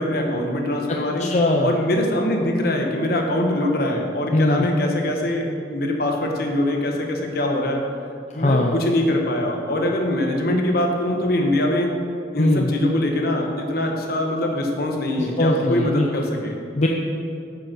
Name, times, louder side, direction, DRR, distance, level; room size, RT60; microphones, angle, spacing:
voice 1, 0.0-1.3 1.6-7.8 8.3-11.9 12.3-16.6, left 1 dB, 60° left, 2 dB, 1.3 m, -23 dB
voice 2, 0.9-1.7 4.3-4.7 8.3-8.8 12.4-12.7 15.4-16.1 16.7-16.9, left 1 dB, 40° left, 0 dB, 0.6 m, -20 dB
8.3 x 8.1 x 6.2 m, 2.6 s
head